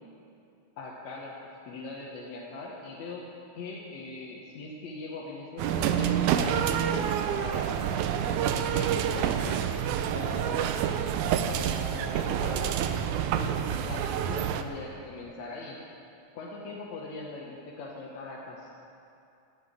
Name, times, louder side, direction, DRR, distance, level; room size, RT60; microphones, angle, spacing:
voice 1, 0.8-1.3 1.7-3.2 3.6-7.9 8.5-9.6 10.1-10.8 11.5-15.8 16.4-18.6, left 3 dB, 60° left, -4 dB, 2.2 m, -40 dB
sound 1, 5.6-14.6, right 9 dB, 85° right, 1.7 m, -28 dB
17.5 x 6.0 x 8.9 m, 2.6 s
omnidirectional pair, 4.1 m